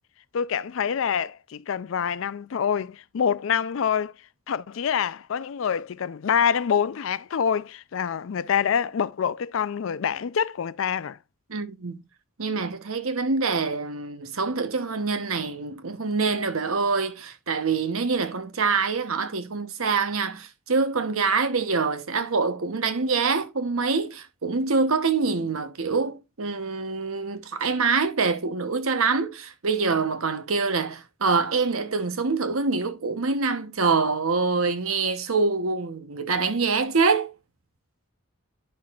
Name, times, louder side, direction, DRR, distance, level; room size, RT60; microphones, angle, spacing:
voice 1, 0.3-4.1 4.5-11.2, left 7 dB, 70° left, 0.4 m, -26 dB
voice 2, 11.5-12.0 12.4-37.3, right 4 dB, 90° right, 1.0 m, -25 dB
11.0 x 5.8 x 2.4 m
head